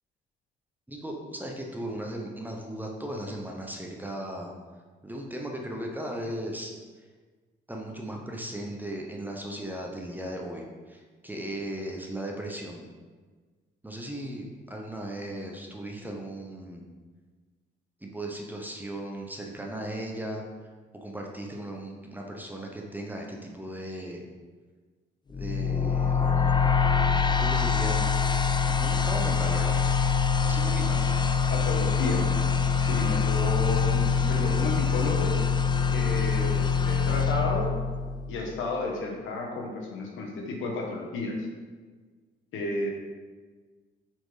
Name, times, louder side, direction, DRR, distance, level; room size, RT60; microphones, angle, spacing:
voice 1, 0.9-4.5 5.0-6.7 7.7-12.8 13.8-16.8 18.0-20.4 20.9-24.3 25.3-26.5 27.4-28.1 28.7-29.8 30.4-31.1, right 1 dB, 10° right, 0 dB, 0.9 m, -37 dB
sound 1, 25.3-38.4, left 5 dB, 25° left, 0.3 m, -24 dB
voice 2, 30.6-31.0 31.5-32.2 32.8-35.4 35.9-37.7 38.3-41.5 42.5-42.9, left 2 dB, 85° left, 0 dB, 1.2 m, -32 dB
4.6 x 4.5 x 4.8 m, 1.4 s
cardioid pair, 90°, 20 cm